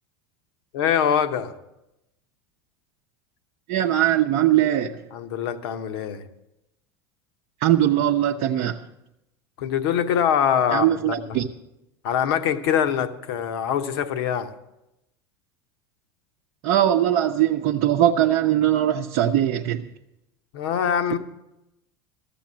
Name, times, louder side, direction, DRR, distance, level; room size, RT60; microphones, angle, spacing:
voice 1, 0.7-1.5 5.1-6.2 9.6-11.4 12.0-14.5 20.5-21.2, left 8 dB, 65° left, 10 dB, 0.9 m, -23 dB
voice 2, 3.7-5.0 7.6-8.8 10.7-11.5 16.6-19.9, right 11 dB, 50° right, 2 dB, 0.7 m, -21 dB
13.5 x 7.0 x 7.4 m, 0.91 s
figure-of-eight pair, 80°, 14 cm